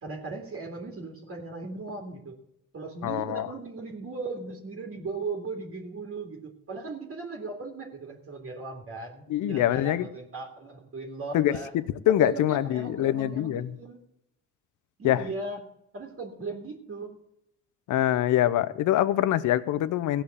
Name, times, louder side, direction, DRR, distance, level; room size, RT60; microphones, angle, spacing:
voice 1, 0.0-2.4 2.7-11.7 12.2-14.0 15.0-15.7 15.9-17.1, right 3 dB, 45° right, 2.5 m, -37 dB
voice 2, 3.0-3.5 9.3-10.1 11.3-13.8 15.0-15.3 17.9-20.2, left 12 dB, 80° left, 0.8 m, -24 dB
16.0 x 5.8 x 8.1 m
cardioid pair, 90°, 30 cm